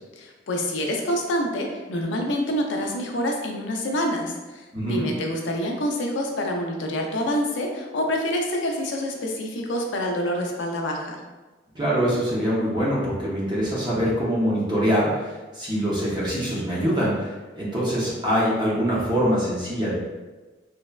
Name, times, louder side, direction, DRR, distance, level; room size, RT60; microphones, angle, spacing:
voice 1, 0.2-11.2, equal, 85° left, 2 dB, 0.4 m, -27 dB
voice 2, 4.7-5.1 11.7-19.9, equal, 25° right, -7 dB, 0.6 m, -24 dB
3.2 x 2.1 x 2.2 m, 1.2 s
head